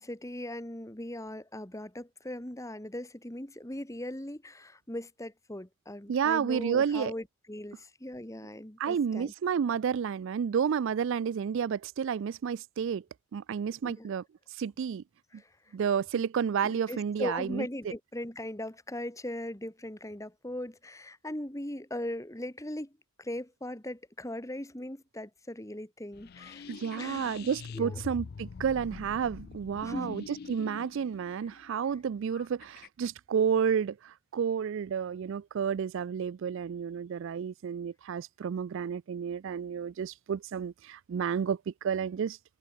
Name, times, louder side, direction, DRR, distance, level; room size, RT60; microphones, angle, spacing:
voice 1, 0.0-9.3 13.8-14.1 15.3-15.7 16.6-22.9 23.2-26.7 27.0-28.0 29.8-30.2, left 1 dB, 15° left, 2.0 m, -39 dB
voice 2, 6.1-7.1 8.8-13.0 13.3-14.2 14.5-15.0 15.7-17.6 26.7-42.4, right 7 dB, 60° right, 0.3 m, -31 dB
sound 1, 26.1-32.9, left 5 dB, 45° left, 0.4 m, -44 dB
open air
head